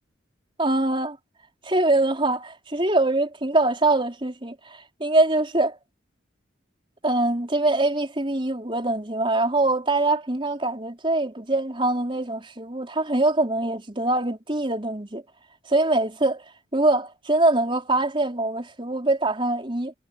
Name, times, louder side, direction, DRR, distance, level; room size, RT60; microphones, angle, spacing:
voice 1, 0.6-1.2 1.6-5.8 7.0-15.2 15.7-16.4 16.7-19.9, right 2 dB, 25° right, 4.3 m, -23 dB
head